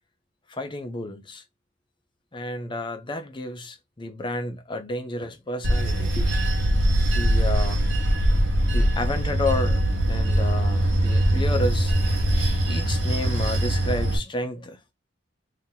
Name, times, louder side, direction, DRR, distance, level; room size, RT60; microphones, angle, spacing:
voice 1, 0.5-1.4 2.3-6.3 7.1-7.8 8.7-9.8 10.1-12.0 12.6-14.8, left 2 dB, 25° left, 0.6 m, -31 dB
Bell / Train, 5.6-14.2, right 1 dB, 85° right, 1.1 m, -22 dB
2.8 x 2.8 x 3.7 m
head